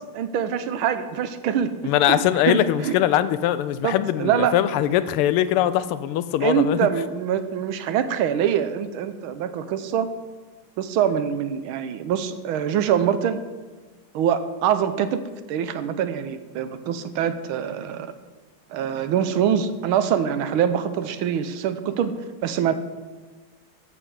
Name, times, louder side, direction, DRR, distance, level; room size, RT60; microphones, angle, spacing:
voice 1, 0.1-1.7 2.1-3.0 3.8-4.5 6.4-10.1 10.8-13.4 14.1-15.2 15.5-18.1 18.7-22.1 22.4-22.7, right 9 dB, 75° right, 11 dB, 1.5 m, -24 dB
voice 2, 1.8-6.8, left 12 dB, 85° left, 14 dB, 1.5 m, -21 dB
13.0 x 7.8 x 4.8 m, 1.3 s
omnidirectional pair, 2.4 m